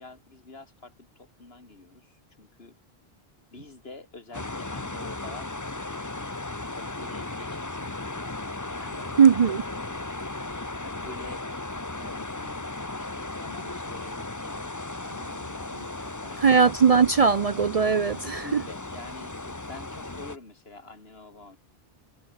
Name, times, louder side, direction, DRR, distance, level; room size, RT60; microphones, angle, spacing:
voice 1, 0.0-2.7 3.5-6.4 6.7-8.3 8.6-9.9 10.8-11.5 11.9-12.7 13.0-14.7 15.0-16.7 18.2-21.6, left 3 dB, 75° left, 3.1 m, -47 dB
sound 1, 4.3-20.4, left 2 dB, 20° left, 1.1 m, -36 dB
voice 2, 9.2-9.6 16.4-18.6, right 6 dB, 45° right, 0.5 m, -19 dB
omnidirectional pair, 1.0 m